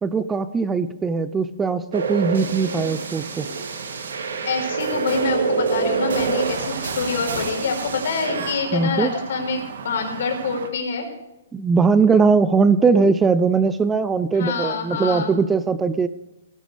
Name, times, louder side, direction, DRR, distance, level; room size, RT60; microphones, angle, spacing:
voice 1, 0.0-3.5 8.7-9.1 11.5-16.1, right 5 dB, 10° right, 13 dB, 0.4 m, -20 dB
sound 1, 1.9-8.5, right 4 dB, 90° right, 2.8 m, -27 dB
sound 2, 2.0-10.7, right 6 dB, 65° right, 1.8 m, -36 dB
voice 2, 4.4-11.1 14.3-15.3, left 4 dB, 60° left, 3 dB, 4.7 m, -26 dB
17.5 x 11.5 x 3.4 m, 0.94 s
hypercardioid pair, 160°, 0 cm